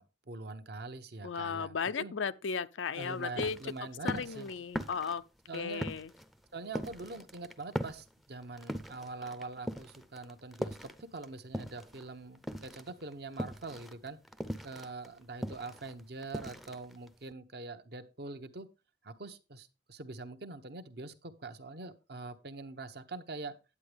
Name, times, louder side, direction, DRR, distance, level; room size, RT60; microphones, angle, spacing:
voice 1, 0.0-2.1 3.0-4.5 5.5-5.9 6.5-14.2 14.6-18.7 19.0-23.5, right 3 dB, 55° right, 0.9 m, -44 dB
voice 2, 1.2-3.6 4.0-5.2 5.5-6.1, left 6 dB, 90° left, 0.5 m, -35 dB
sound 1, 3.0-12.1 12.3-17.3, equal, ahead, 0.5 m, -40 dB
9.7 x 8.8 x 3.4 m
head